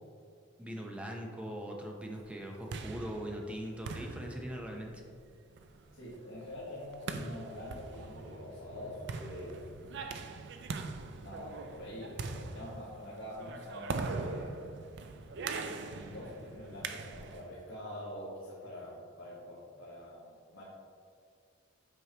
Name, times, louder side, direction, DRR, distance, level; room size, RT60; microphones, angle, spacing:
voice 1, 0.6-4.9, equal, 5° right, 0 dB, 0.7 m, -41 dB
sound 1, 2.3-17.5, right 4 dB, 65° right, 0.4 m, -42 dB
voice 2, 5.9-9.8 11.2-14.8 15.6-20.6, left 1 dB, 80° left, -8 dB, 1.3 m, -45 dB
sound 2, 6.9-11.5, left 2 dB, 65° left, 0.8 m, -61 dB
8.2 x 4.5 x 2.9 m, 2.2 s
head